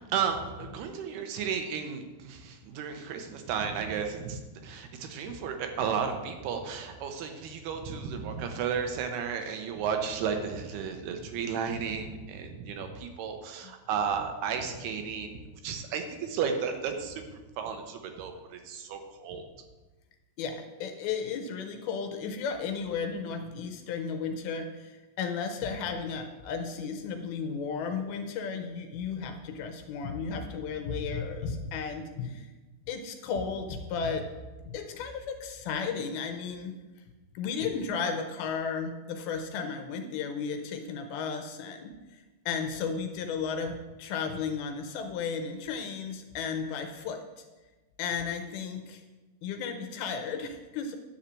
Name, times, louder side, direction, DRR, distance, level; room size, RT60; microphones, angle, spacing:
voice 1, 0.1-15.4 15.6-17.2 17.6-19.5, right 6 dB, 80° right, 5 dB, 2.8 m, -33 dB
voice 2, 20.4-32.5 32.9-34.2 34.6-36.7 37.3-47.4 48.0-49.0 49.4-51.0, left 5 dB, 80° left, 5 dB, 2.5 m, -34 dB
10.5 x 4.3 x 7.5 m, 1.2 s
omnidirectional pair, 4.7 m